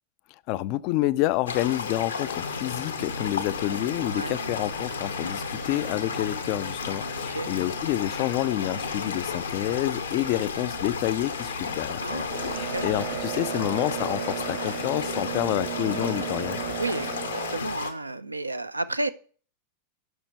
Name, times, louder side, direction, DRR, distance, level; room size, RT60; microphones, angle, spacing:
voice 1, 0.5-16.6, left 16 dB, 45° left, 0.3 m, -28 dB
sound 1, 1.5-17.9, left 5 dB, 70° left, 0.9 m, -33 dB
sound 2, 3.0-13.2, right 2 dB, 85° left, 0.6 m, -42 dB
voice 2, 7.2-7.5 12.0-12.9 16.8-19.1, right 2 dB, 85° right, 0.4 m, -32 dB
Boat Water vehicle, 12.3-17.6, right 11 dB, 45° right, 0.9 m, -34 dB
6.3 x 5.8 x 6.5 m
figure-of-eight pair, 90°, 0 cm